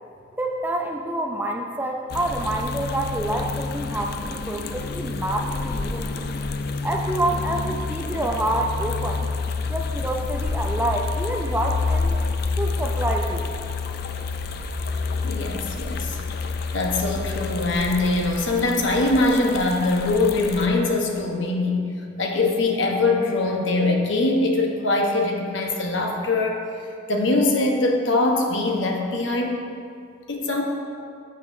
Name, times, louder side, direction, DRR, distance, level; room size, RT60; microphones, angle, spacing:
voice 1, 0.4-6.3 6.8-9.3 9.7-12.2 12.6-13.5, right 1 dB, 10° right, 1 dB, 0.4 m, -27 dB
sound 1, 2.1-20.7, left 4 dB, 50° left, 0.4 m, -28 dB
voice 2, 15.2-16.3 16.7-21.9 22.2-26.6 27.1-29.6 30.3-30.6, left 2 dB, 70° left, 1 dB, 1.0 m, -22 dB
11.5 x 7.9 x 2.7 m, 2.4 s
head